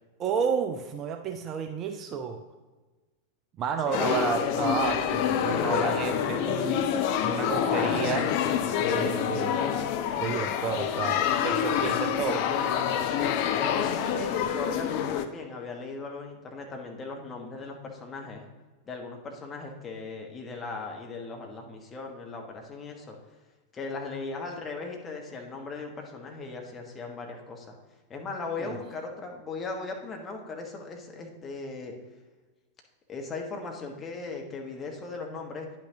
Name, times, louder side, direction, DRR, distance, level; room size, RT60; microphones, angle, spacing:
voice 1, 0.2-2.4 3.6-6.8 7.2-8.4 8.8-9.5 10.2-12.4 28.6-28.7, right 6 dB, 30° right, 6 dB, 0.5 m, -31 dB
sound 1, 3.9-15.3, left 8 dB, 45° left, 0.5 m, -27 dB
voice 2, 3.9-4.2 5.4-5.8 11.7-11.9 13.1-18.5 18.9-23.2 23.7-27.7 28.1-31.9 33.1-35.7, left 3 dB, 20° left, 1 dB, 1.2 m, -38 dB
9.7 x 5.9 x 2.9 m, 1.3 s
figure-of-eight pair, 90°, 0 cm